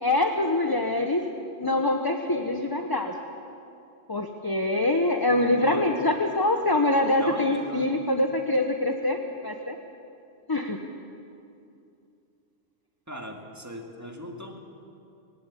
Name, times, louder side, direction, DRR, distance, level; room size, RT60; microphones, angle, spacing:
voice 1, 0.0-1.2 1.6-3.4 4.1-9.2 9.4-9.8 10.5-10.8, left 2 dB, 20° left, 4 dB, 1.0 m, -24 dB
voice 2, 5.6-5.9 7.2-8.0 13.1-14.6, equal, 15° right, 1 dB, 2.1 m, -38 dB
19.5 x 18.5 x 8.4 m, 2.6 s
omnidirectional pair, 1.2 m